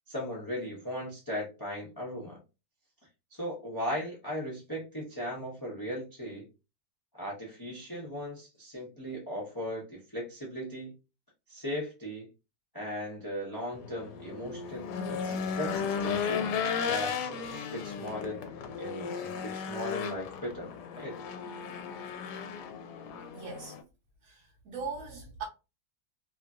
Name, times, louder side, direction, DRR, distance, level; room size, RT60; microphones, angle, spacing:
voice 1, 0.1-2.4 3.3-6.5 7.1-10.9 11.5-12.3 12.7-16.5 16.9-18.4 18.8-20.7 21.0-21.2, left 1 dB, 20° left, 0.5 m, -37 dB
Race car auto racing / Engine, 13.7-23.8, left 6 dB, 75° left, 1.1 m, -35 dB
voice 2, 23.3-23.8 24.2-25.4, right 5 dB, 60° right, 1.0 m, -40 dB
2.9 x 2.6 x 2.3 m
omnidirectional pair, 1.8 m